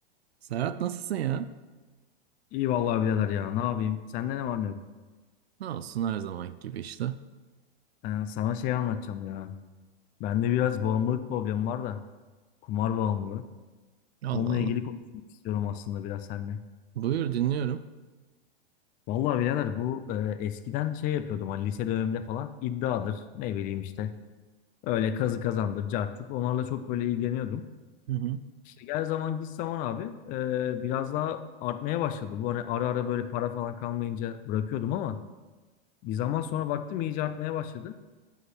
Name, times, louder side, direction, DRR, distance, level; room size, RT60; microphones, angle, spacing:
voice 1, 0.5-1.5 5.6-7.2 14.2-14.8 17.0-17.8 28.1-28.4, right 10 dB, 85° right, 14 dB, 0.6 m, -30 dB
voice 2, 2.5-4.8 8.0-9.5 10.2-12.0 12.7-13.4 14.3-15.0 15.4-16.6 19.1-24.1 24.8-27.7 28.8-35.2 36.0-37.9, left 10 dB, 25° left, 12 dB, 0.4 m, -30 dB
7.8 x 5.7 x 6.0 m, 1.3 s
hypercardioid pair, 130°, 31 cm